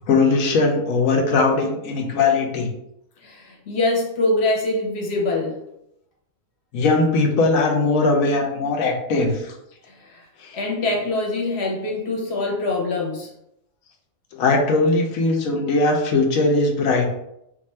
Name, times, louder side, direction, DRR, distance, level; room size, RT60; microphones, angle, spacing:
voice 1, 0.1-2.7 6.7-9.5 10.4-10.6 14.3-17.1, left 3 dB, 90° left, 2 dB, 1.1 m, -20 dB
voice 2, 3.2-5.6 9.8-10.2 10.5-13.3, left 2 dB, 55° left, -1 dB, 1.0 m, -24 dB
2.6 x 2.5 x 4.2 m, 0.80 s
omnidirectional pair, 1.4 m